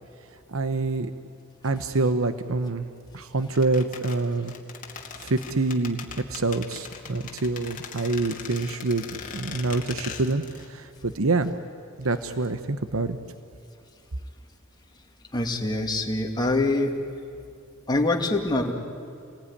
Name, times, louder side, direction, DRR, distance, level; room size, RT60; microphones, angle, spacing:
voice 1, 0.5-1.1 1.6-2.8 3.1-4.5 5.2-6.0 6.3-9.0 9.3-11.5 12.0-13.2, right 3 dB, 75° right, 10 dB, 1.0 m, -26 dB
sound 1, 3.5-10.7 11.0-11.1, left 5 dB, 40° left, 2.3 m, -40 dB
voice 2, 15.3-16.9 17.9-18.7, left 2 dB, 20° left, 1 dB, 2.4 m, -24 dB
28.5 x 20.5 x 10.0 m, 2.4 s
head